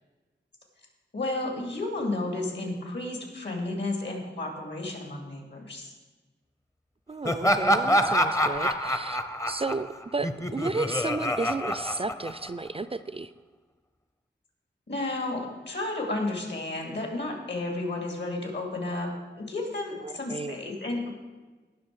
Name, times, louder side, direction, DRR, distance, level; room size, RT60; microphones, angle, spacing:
voice 1, 1.1-5.9 14.9-19.1 19.4-21.1, left 2 dB, 70° left, 2 dB, 2.6 m, -32 dB
voice 2, 7.1-9.2 9.5-13.3 20.0-20.6, right 3 dB, 30° right, 12 dB, 0.4 m, -33 dB
Laughter, 7.2-12.7, equal, 15° left, 0.7 m, -26 dB
17.5 x 6.1 x 4.9 m, 1.3 s
wide cardioid pair, 90°, 19 cm